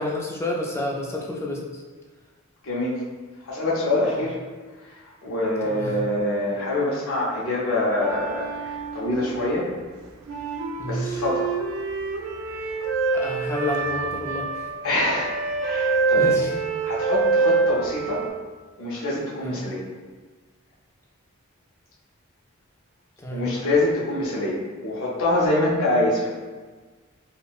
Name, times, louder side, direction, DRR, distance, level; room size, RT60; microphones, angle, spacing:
voice 1, 0.0-1.8 4.1-4.2 5.6-6.0 10.8-11.2 13.1-14.7 16.2-16.5 19.4-19.6 23.2-23.5, left 1 dB, 10° left, -2 dB, 0.3 m, -29 dB
voice 2, 2.6-3.0 3.4-4.4 4.9-9.7 10.8-11.5 12.8-12.9 14.8-15.3 15.6-16.3 16.8-18.2 18.8-19.8 23.3-26.3, left 2 dB, 70° left, -6 dB, 0.6 m, -25 dB
sound 1, 8.0-9.7 10.3-18.3, right 4 dB, 70° right, 0.3 m, -26 dB
3.5 x 2.1 x 2.3 m, 1.4 s
head